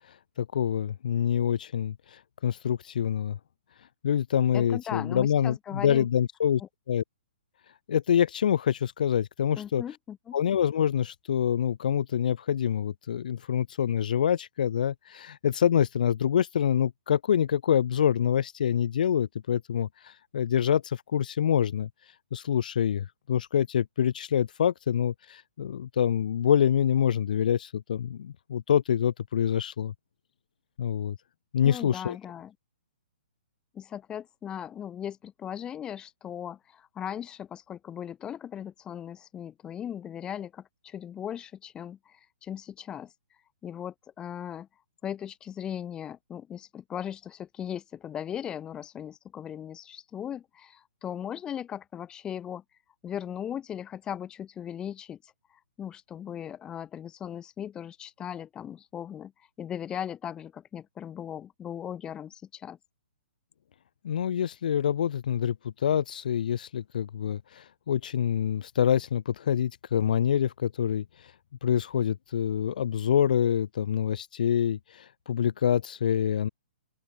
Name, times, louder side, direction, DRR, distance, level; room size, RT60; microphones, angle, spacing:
voice 1, 0.4-1.9 2.4-3.4 4.0-6.6 6.9-7.0 7.9-9.8 10.3-21.9 22.3-29.9 30.8-31.2 31.5-32.2 64.0-65.6 65.8-71.0 71.6-76.5, left 9 dB, 50° left, 0.9 m, -26 dB
voice 2, 4.5-6.1 6.6-6.7 9.6-10.4 31.6-32.5 33.7-43.1 43.6-44.7 45.0-52.6 53.0-55.3 55.8-59.3 59.6-62.8, left 9 dB, 15° left, 1.5 m, -38 dB
open air
figure-of-eight pair, 125°, 6 cm